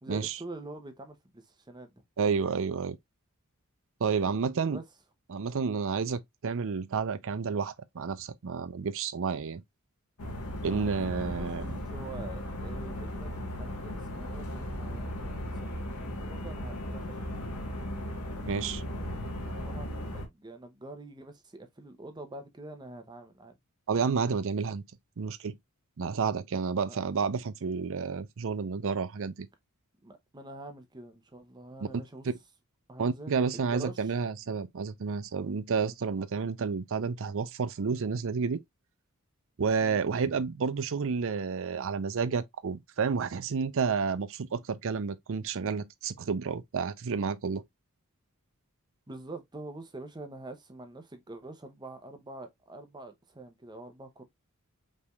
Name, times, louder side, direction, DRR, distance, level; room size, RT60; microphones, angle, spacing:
voice 1, 0.0-1.9 4.7-4.8 11.2-11.5 11.9-17.1 19.4-23.6 26.9-27.0 30.0-32.3 32.9-34.1 35.8-35.9 39.8-40.0 49.1-54.2, right 2 dB, 20° right, 0.7 m, -45 dB
voice 2, 2.2-3.0 4.0-4.8 5.3-9.6 10.6-11.7 18.5-18.8 23.9-24.8 25.2-25.5 26.0-29.5 33.0-38.6 39.6-47.6, right 5 dB, 65° right, 0.5 m, -30 dB
sound 1, 10.2-20.3, left 1 dB, 85° left, 1.3 m, -36 dB
5.4 x 3.4 x 2.3 m
head